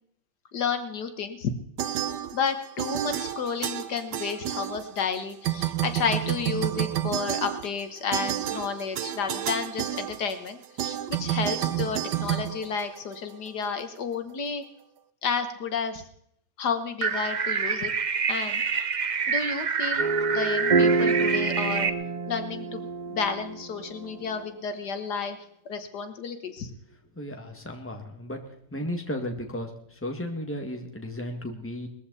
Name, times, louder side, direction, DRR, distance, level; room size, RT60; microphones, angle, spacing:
voice 1, 0.5-1.5 2.3-14.6 15.2-16.0 16.6-17.9 18.3-18.6 19.3-20.1 20.3-21.9 22.3-25.4 25.7-26.7, left 5 dB, 70° left, 8 dB, 1.8 m, -31 dB
sound 1, 1.8-2.5 2.8-5.2 5.4-13.3, right 12 dB, 80° right, 1.4 m, -30 dB
sound 2, 17.0-21.9, right 6 dB, 65° right, 0.4 m, -27 dB
sound 3, 20.0-24.4, right 4 dB, 35° right, 0.7 m, -27 dB
voice 2, 27.2-28.4 28.7-31.9, left 1 dB, 5° left, 3 dB, 2.0 m, -34 dB
20.0 x 14.5 x 4.2 m, 0.69 s
omnidirectional pair, 1.8 m